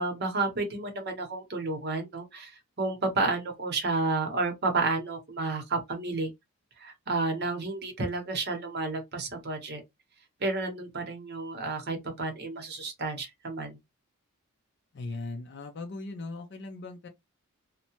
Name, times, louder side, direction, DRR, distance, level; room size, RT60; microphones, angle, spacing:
voice 1, 0.0-6.3 6.8-9.8 10.4-13.8, right 3 dB, 50° right, 0.8 m, -31 dB
voice 2, 14.9-17.1, left 3 dB, 50° left, 0.4 m, -38 dB
2.7 x 2.1 x 2.9 m
head